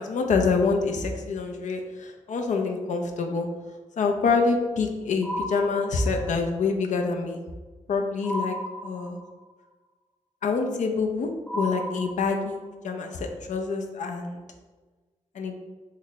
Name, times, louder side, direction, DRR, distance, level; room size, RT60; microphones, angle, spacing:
voice 1, 0.0-3.5 4.0-7.4 7.9-8.6 8.8-9.2 10.4-14.4 15.3-15.5, left 4 dB, 70° left, 4 dB, 0.4 m, -26 dB
sound 1, 5.2-6.5 8.2-9.5 11.5-12.7, equal, 15° left, 0.8 m, -34 dB
3.2 x 2.1 x 3.9 m, 1.3 s
cardioid pair, 60°, 13 cm